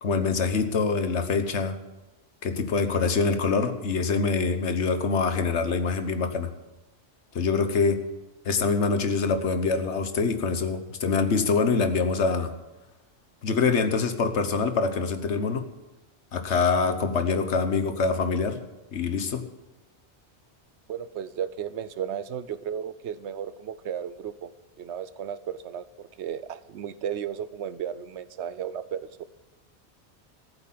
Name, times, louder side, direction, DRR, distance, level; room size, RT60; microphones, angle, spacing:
voice 1, 0.0-1.8 2.4-6.5 7.3-8.0 8.4-12.5 13.4-15.7 16.3-18.6 18.9-19.5, left 4 dB, 85° left, 9 dB, 1.4 m, -25 dB
voice 2, 20.9-24.5 24.8-29.2, right 9 dB, 80° right, 15 dB, 1.0 m, -34 dB
13.5 x 8.2 x 7.5 m, 1.1 s
omnidirectional pair, 1.1 m